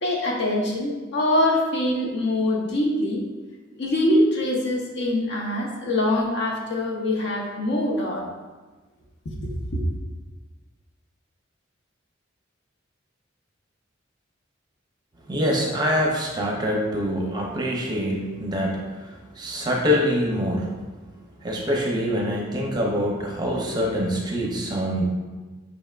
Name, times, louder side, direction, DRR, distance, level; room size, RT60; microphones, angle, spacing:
voice 1, 0.0-3.2 3.7-8.3 9.4-9.8, left 1 dB, 60° left, -2 dB, 0.7 m, -24 dB
voice 2, 15.3-20.7 21.4-25.0, equal, 20° right, -2 dB, 0.6 m, -25 dB
5.4 x 3.3 x 2.4 m, 1.3 s
head